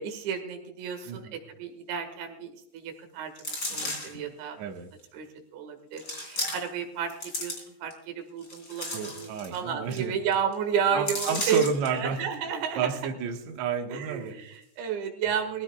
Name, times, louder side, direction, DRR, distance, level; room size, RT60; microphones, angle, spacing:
voice 1, 0.0-4.6 5.1-5.3 5.5-13.1 13.9-15.6, right 7 dB, 85° right, 5 dB, 4.1 m, -32 dB
voice 2, 1.1-1.4 4.6-4.9 8.9-10.1 10.9-12.2 12.8-14.3, right 6 dB, 60° right, 2 dB, 2.0 m, -31 dB
sound 1, 3.4-4.2 5.0-5.1 6.0-6.8 7.1-7.9 8.4-9.6 9.9-10.0 10.3-10.5 11.1-11.9 12.3-12.4, left 2 dB, 20° left, 3.2 m, -34 dB
22.5 x 15.5 x 2.3 m, 0.76 s
omnidirectional pair, 5.1 m